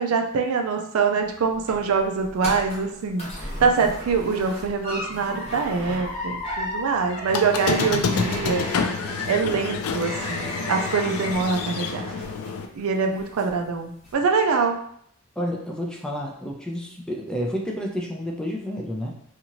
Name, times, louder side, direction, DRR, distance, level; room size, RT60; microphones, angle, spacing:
voice 1, 0.0-8.6 9.3-12.1 12.7-14.8, right 5 dB, 80° right, 4 dB, 0.4 m, -24 dB
sound 1, 1.2-12.8 13.1-13.6 14.0-14.1, left 1 dB, 30° left, 0.9 m, -35 dB
Squeak, 7.3-12.6, left 5 dB, 80° left, 0.3 m, -28 dB
voice 2, 15.4-19.1, equal, 5° left, -1 dB, 0.3 m, -30 dB
2.7 x 2.5 x 2.9 m, 0.68 s
head